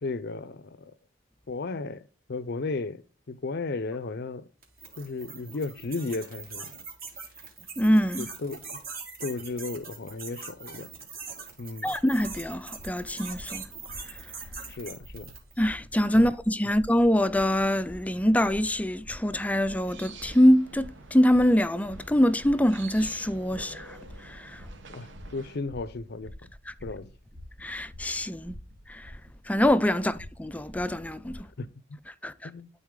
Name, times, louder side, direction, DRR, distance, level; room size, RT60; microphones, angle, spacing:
voice 1, 0.0-0.9 1.5-3.0 3.3-4.5 5.0-6.7 8.2-8.6 9.2-10.9 11.6-12.0 14.7-15.3 16.1-16.3 24.9-26.3 26.8-27.1 31.6-32.0 32.4-32.7, left 3 dB, 55° left, 0.6 m, -34 dB
sound 1, 4.6-15.6, right 5 dB, 50° right, 2.7 m, -42 dB
voice 2, 7.8-8.3 11.8-13.7 15.6-24.0 24.2-24.6 27.6-28.6 28.9-29.1 29.5-31.4 32.2-32.5, equal, 10° left, 0.4 m, -24 dB
sound 2, 11.9-31.4, equal, 85° right, 2.0 m, -48 dB
sound 3, 19.7-25.6, right 4 dB, 65° right, 1.0 m, -49 dB
12.0 x 4.2 x 3.7 m
head